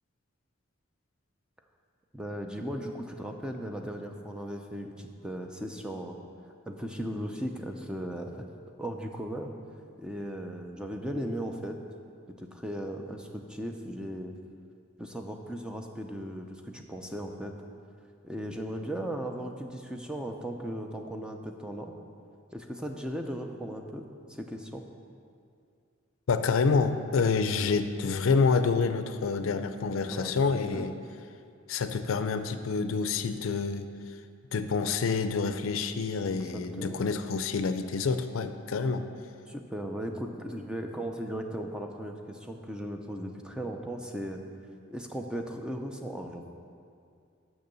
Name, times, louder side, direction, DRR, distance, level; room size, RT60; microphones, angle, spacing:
voice 1, 2.1-6.2 6.7-8.5 8.8-9.5 10.0-11.8 12.4-14.3 15.0-17.5 18.2-21.9 22.5-24.8 30.0-30.4 30.7-30.9 36.4-37.0 39.5-44.4 44.9-46.4, equal, 5° right, 3 dB, 0.5 m, -37 dB
voice 2, 26.3-30.9 31.7-33.9 34.5-39.0, left 4 dB, 80° left, 10 dB, 0.4 m, -27 dB
6.6 x 6.1 x 6.7 m, 2.4 s
head